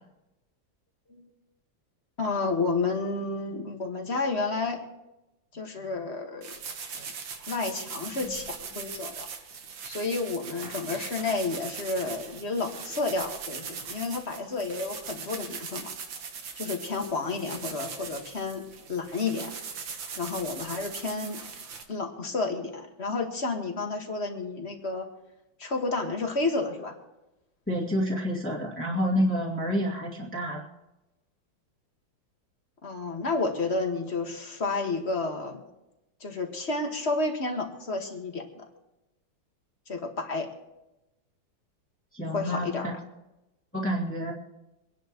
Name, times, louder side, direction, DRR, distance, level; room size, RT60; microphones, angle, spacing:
voice 1, 2.2-4.8 5.5-6.5 7.5-9.3 9.8-15.9 16.6-18.6 18.9-19.5 20.2-21.4 21.9-25.1 25.6-26.9 32.8-35.6 36.2-38.6 39.9-40.5 42.3-42.9, left 3 dB, 35° left, 3 dB, 1.8 m, -31 dB
sound 1, 6.4-21.8, right 6 dB, 80° right, 2.1 m, -40 dB
voice 2, 27.7-30.6 42.1-42.9 43.7-44.3, equal, 5° left, -5 dB, 2.2 m, -28 dB
25.5 x 10.5 x 3.1 m, 0.96 s
omnidirectional pair, 2.1 m